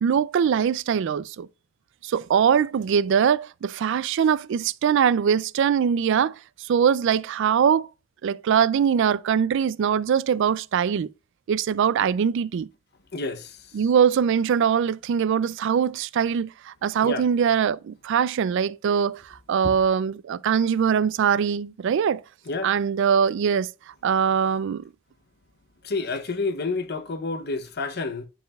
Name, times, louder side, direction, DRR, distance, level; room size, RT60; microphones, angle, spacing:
voice 1, 0.0-1.5 2.0-6.3 6.7-7.9 8.2-11.1 11.5-12.7 13.7-19.2 19.5-22.2 22.6-23.7 24.0-24.9, right 7 dB, 65° right, 0.3 m, -22 dB
voice 2, 13.1-13.6 17.0-17.2 19.6-19.7 22.5-22.7 25.8-28.3, left 3 dB, 55° left, 0.8 m, -29 dB
10.5 x 4.9 x 2.3 m
head